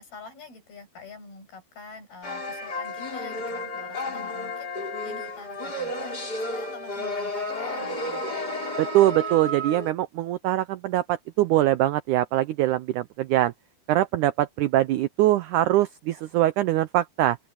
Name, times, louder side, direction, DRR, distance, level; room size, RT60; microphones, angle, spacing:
voice 1, 0.0-8.3, left 4 dB, 80° left, 9.6 m, -46 dB
sound 1, 2.2-9.9, left 1 dB, 25° left, 5.6 m, -32 dB
voice 2, 8.8-13.5 13.9-17.4, right 14 dB, 85° right, 1.7 m, -23 dB
open air
omnidirectional pair, 4.3 m